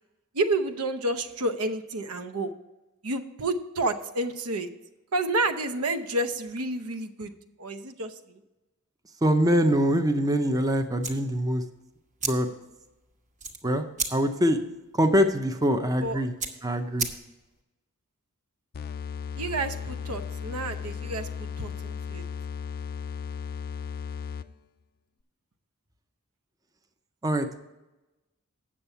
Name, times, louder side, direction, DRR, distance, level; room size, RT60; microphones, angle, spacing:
voice 1, 0.3-2.5 3.0-4.7 5.1-7.3 7.6-8.4 16.0-16.2 19.4-21.3 21.6-22.2, right 2 dB, 75° right, 8 dB, 0.8 m, -30 dB
voice 2, 9.2-11.6 12.2-12.5 13.6-13.8 14.1-14.6 14.9-16.3 16.6-17.1 27.2-27.6, equal, 15° right, 6 dB, 0.6 m, -24 dB
sound 1, 10.9-17.6, right 4 dB, 35° right, 1.2 m, -37 dB
sound 2, 18.7-24.7, left 6 dB, 45° left, 0.4 m, -36 dB
8.7 x 6.9 x 5.5 m, 1.0 s
head